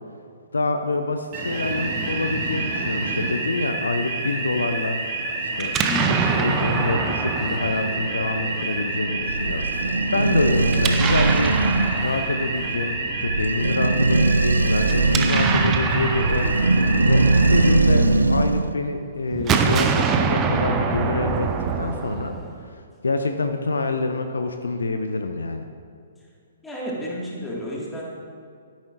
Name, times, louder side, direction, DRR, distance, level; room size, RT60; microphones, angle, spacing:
voice 1, 0.5-5.0 5.4-5.7 6.1-11.6 12.0-16.5 17.1-21.5 21.8-22.4 23.0-25.7, left 3 dB, 70° left, 6 dB, 0.6 m, -26 dB
sound 1, 1.3-17.7, right 2 dB, 35° right, 2.3 m, -28 dB
Explosion, 5.6-8.6 10.7-12.9 14.8-18.3 19.3-22.7, right 5 dB, 20° right, 0.6 m, -25 dB
voice 2, 5.9-6.5 10.6-10.9 17.9-18.2 26.6-28.0, left 1 dB, 5° left, -5 dB, 2.0 m, -32 dB
sound 2, 9.0-18.7, right 2 dB, 75° right, 0.4 m, -21 dB
12.5 x 10.5 x 2.6 m, 2.3 s
figure-of-eight pair, 120°, 0 cm